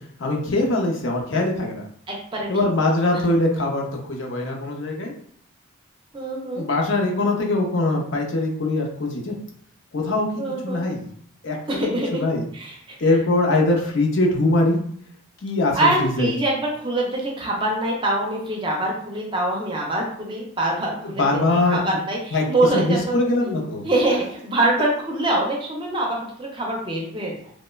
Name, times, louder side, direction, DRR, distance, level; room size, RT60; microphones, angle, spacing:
voice 1, 0.2-1.8 2.5-5.1 6.6-9.3 9.9-10.3 10.6-11.0 11.4-12.4 13.0-14.8 15.4-16.3 21.0-21.8 22.3-22.4 22.7-23.8, left 2 dB, 65° left, 0 dB, 0.5 m, -22 dB
voice 2, 2.1-2.5 3.1-3.2 6.1-6.7 10.4-10.8 11.7-12.2 12.5-13.0 15.7-21.2 21.7-23.2 23.5-23.6 23.8-27.5, right 2 dB, 25° right, -2 dB, 0.5 m, -24 dB
2.9 x 2.1 x 2.2 m, 0.62 s
head